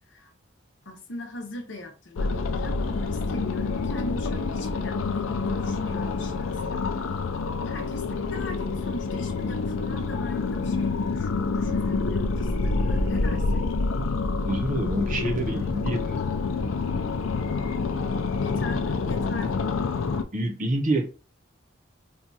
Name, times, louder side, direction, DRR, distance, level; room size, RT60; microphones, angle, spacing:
voice 1, 0.8-6.8 7.6-13.6 18.4-19.7, left 2 dB, 65° left, 0.9 m, -40 dB
sound 1, 2.2-20.2, left 4 dB, 85° left, 0.5 m, -27 dB
voice 2, 14.4-16.2 20.3-21.0, right 1 dB, 40° right, 0.8 m, -27 dB
2.9 x 2.3 x 3.9 m
head